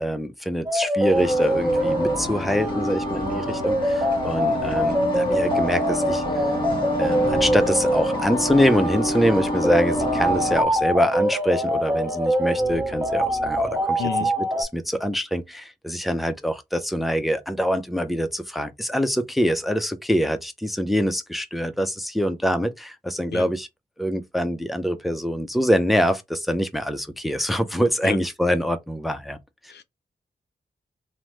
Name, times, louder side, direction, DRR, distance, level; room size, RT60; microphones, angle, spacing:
voice 1, 0.0-6.4 7.0-14.3 14.6-23.7 24.0-29.4, equal, ahead, 0.4 m, -24 dB
sound 1, 0.7-14.6, equal, 20° right, 1.1 m, -24 dB
sound 2, 1.1-10.6, equal, 30° left, 1.3 m, -28 dB
sound 3, 4.5-5.0 7.2-8.2 9.9-11.0 12.5-13.9, right 4 dB, 60° right, 0.8 m, -39 dB
voice 2, 14.0-14.3 23.3-23.5 28.0-28.2 29.7-29.8, left 6 dB, 75° left, 0.4 m, -30 dB
3.0 x 2.1 x 3.0 m
wide cardioid pair, 75°, 18 cm